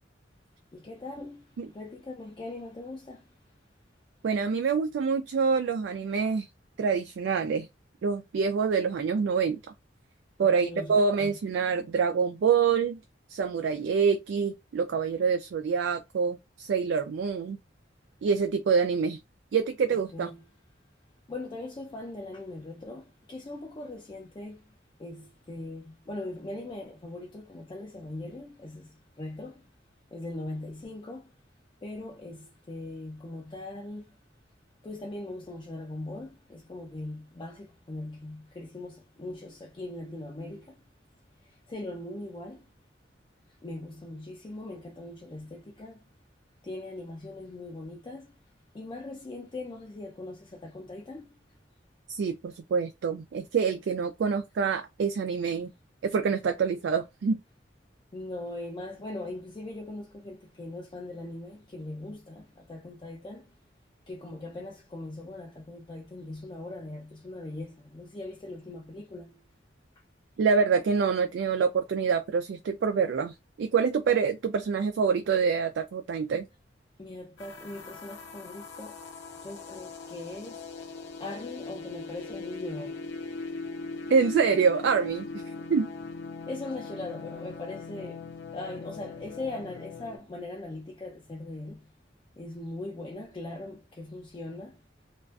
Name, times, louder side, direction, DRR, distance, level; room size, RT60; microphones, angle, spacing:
voice 1, 0.7-3.2 10.4-11.4 19.9-20.4 21.3-24.6 25.0-29.6 30.1-31.3 31.8-34.2 34.8-40.8 41.7-42.6 43.6-46.0 46.6-48.3 48.7-51.3 58.1-63.5 64.1-69.4 77.0-79.0 79.4-80.7 81.2-83.1 85.6-85.7 86.5-88.2 88.5-91.9 92.4-94.8, left 2 dB, 25° left, 0.4 m, -40 dB
voice 2, 4.2-6.5 6.8-7.7 8.0-9.6 10.4-13.0 13.3-17.6 18.2-19.2 19.5-20.3 52.1-55.7 56.0-57.4 70.4-76.5 84.1-85.3 85.7-85.9, right 5 dB, 70° right, 0.3 m, -26 dB
sound 1, 77.4-90.2, left 3 dB, 75° left, 0.6 m, -40 dB
2.4 x 2.3 x 2.3 m
head